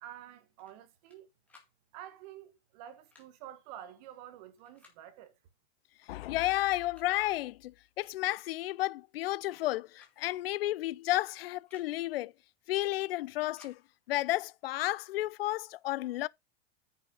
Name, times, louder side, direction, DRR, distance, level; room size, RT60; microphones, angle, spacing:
voice 1, 0.0-1.3 1.9-5.4, right 11 dB, 35° right, 1.5 m, -49 dB
sound 1, 0.6-1.2 1.5-1.7 2.9-3.3 4.6-5.0 6.1-6.2 6.6-7.3 8.6-8.8 9.1-9.6 9.9-10.2 10.4-10.5 11.5-11.9 13.0-13.8 14.6-14.9, left 4 dB, 5° left, 2.1 m, -62 dB
voice 2, 6.0-12.3 12.7-13.8 14.1-16.3, left 16 dB, 60° left, 0.5 m, -32 dB
10.0 x 6.3 x 3.8 m
supercardioid pair, 180°, 34 cm